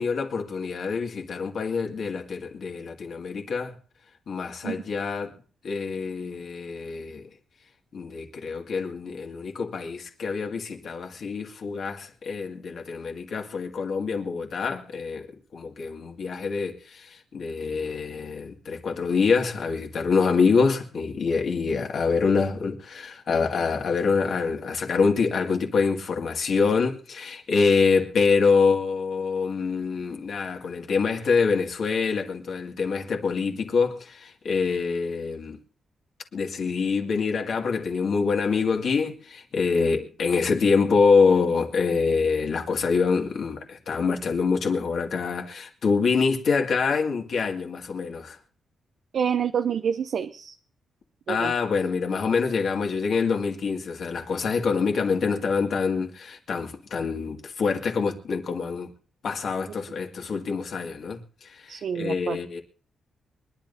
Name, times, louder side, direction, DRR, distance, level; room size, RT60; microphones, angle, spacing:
voice 1, 0.0-3.8 4.3-5.3 5.6-7.3 7.9-15.3 15.5-35.6 36.3-48.4 51.3-58.9 59.2-62.6, left 5 dB, 60° left, 2.2 m, -25 dB
voice 2, 49.1-50.6 51.3-51.5 61.7-62.4, right 7 dB, 60° right, 0.6 m, -27 dB
24.0 x 11.0 x 2.7 m
wide cardioid pair, 135°, 0 cm